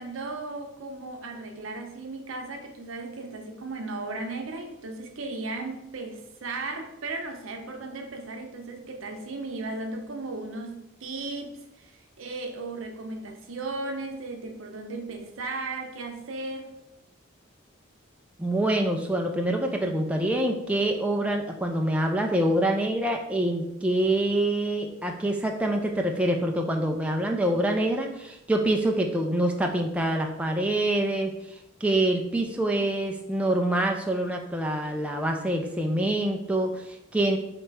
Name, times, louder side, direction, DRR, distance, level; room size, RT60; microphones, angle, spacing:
voice 1, 0.0-16.7, right 3 dB, 80° right, 0.7 m, -36 dB
voice 2, 18.4-37.4, right 1 dB, 5° right, 0.3 m, -26 dB
3.2 x 3.0 x 4.6 m
head